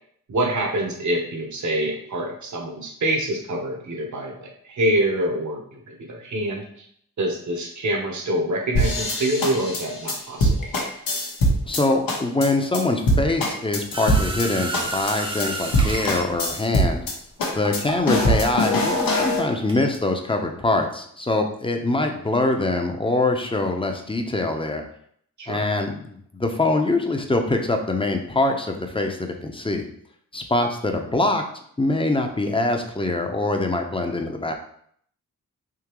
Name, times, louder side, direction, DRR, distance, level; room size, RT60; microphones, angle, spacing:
voice 1, 0.3-6.9 7.2-10.7 25.4-25.6, right 1 dB, 60° right, 1 dB, 1.1 m, -26 dB
sound 1, 8.7-11.8 12.1-12.5 12.7-12.8 13.1-14.5 14.7-15.1 15.4-15.5 15.7-17.1 17.4-19.4, equal, 85° left, 1.0 m, -22 dB
voice 2, 11.7-17.0 17.5-24.8 25.5-29.9 30.3-31.4 31.8-34.5, left 2 dB, 15° left, 4 dB, 0.7 m, -24 dB
sound 2, 13.9-19.4 19.7-20.0, right 2 dB, 15° right, 0.7 m, -32 dB
3.7 x 2.8 x 3.0 m, 0.65 s
cardioid pair, 50°, 33 cm